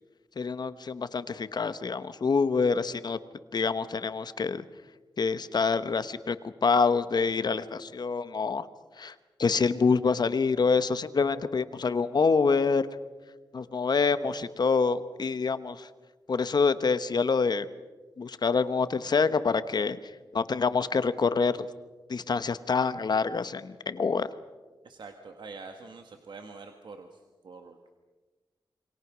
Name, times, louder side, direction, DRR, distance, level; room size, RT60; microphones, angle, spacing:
voice 1, 0.4-3.2 3.5-4.6 5.2-8.7 9.0-9.1 9.4-12.8 13.5-15.9 16.3-17.7 18.2-20.0 20.3-21.7 22.1-24.3, left 5 dB, 55° left, 13 dB, 1.1 m, -26 dB
voice 2, 24.8-28.0, right 4 dB, 70° right, 5 dB, 1.7 m, -46 dB
27.5 x 23.5 x 6.2 m, 1.3 s
wide cardioid pair, 100°, 8 cm